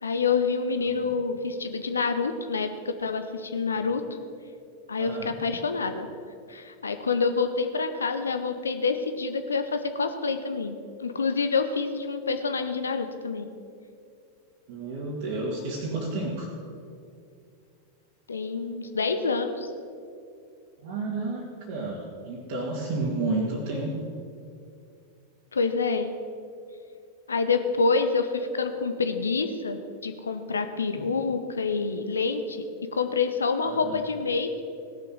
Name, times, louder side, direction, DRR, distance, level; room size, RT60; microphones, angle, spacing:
voice 1, 0.0-4.0 4.9-6.1 6.5-13.5 18.3-19.7 25.5-26.1 27.3-32.6 32.9-34.6, left 4 dB, 75° left, 8 dB, 0.7 m, -27 dB
voice 2, 5.0-5.3 14.7-16.5 20.8-23.9 31.0-31.1 33.6-34.0, right 2 dB, 45° right, -4 dB, 2.1 m, -31 dB
17.0 x 6.9 x 6.2 m, 2.4 s
figure-of-eight pair, 90°, 0 cm